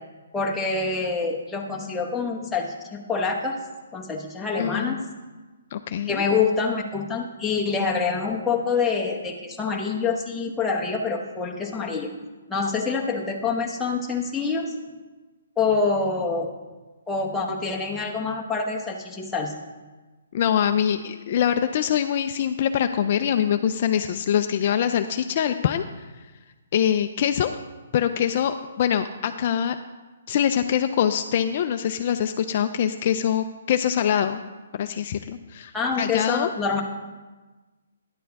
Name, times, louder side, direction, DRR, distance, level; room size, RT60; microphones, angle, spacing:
voice 1, 0.3-3.6 3.9-5.0 6.1-12.1 12.5-14.7 15.6-16.5 17.1-19.5 35.7-36.8, left 4 dB, 5° left, -2 dB, 0.9 m, -26 dB
voice 2, 4.6-5.0 5.7-6.2 20.3-25.8 26.7-27.6 27.9-29.8 30.3-34.4 34.7-35.7 36.0-36.5, left 9 dB, 40° left, 8 dB, 0.4 m, -24 dB
10.5 x 8.5 x 3.5 m, 1.2 s
hypercardioid pair, 160°, 0 cm